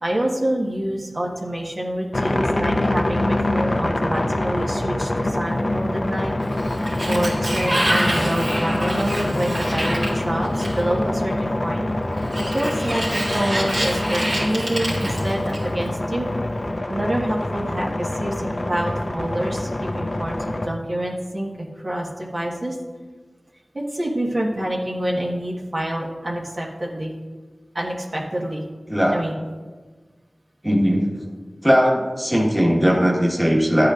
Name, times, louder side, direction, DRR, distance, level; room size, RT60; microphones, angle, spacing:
voice 1, 0.0-6.3 7.1-11.9 12.4-16.3 16.9-22.8 23.7-27.1 27.7-28.6 29.1-29.3, right 1 dB, 55° right, -3 dB, 1.4 m, -27 dB
sound 1, 2.1-20.7, left 1 dB, 45° left, 0.6 m, -25 dB
Sliding door, 6.4-11.0 12.2-15.9, right 1 dB, 70° right, 2.7 m, -27 dB
voice 2, 28.9-29.2 30.6-31.1 31.6-33.9, equal, 10° right, -1 dB, 1.5 m, -18 dB
12.5 x 8.5 x 2.5 m, 1.4 s
wide cardioid pair, 55°, 0 cm